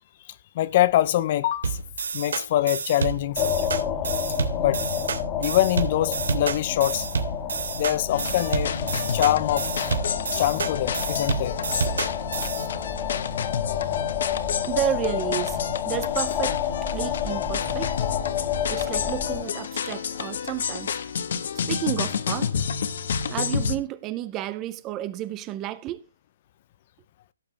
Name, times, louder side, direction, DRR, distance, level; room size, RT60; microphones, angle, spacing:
voice 1, 0.5-1.8 2.1-3.7 4.6-4.8 5.4-7.1 7.7-8.8 9.1-9.7 10.4-11.6, left 13 dB, 35° left, 0.6 m, -24 dB
sound 1, 1.6-12.7, right 5 dB, 75° right, 3.0 m, -29 dB
sound 2, 3.4-19.4, left 8 dB, 20° left, 1.8 m, -29 dB
sound 3, 8.1-23.8, left 7 dB, 55° left, 1.4 m, -30 dB
voice 2, 14.6-16.6 16.9-18.0 18.7-21.0 21.7-22.6 23.3-26.0, right 14 dB, 20° right, 0.6 m, -31 dB
17.5 x 7.3 x 3.3 m
hypercardioid pair, 165°, 0 cm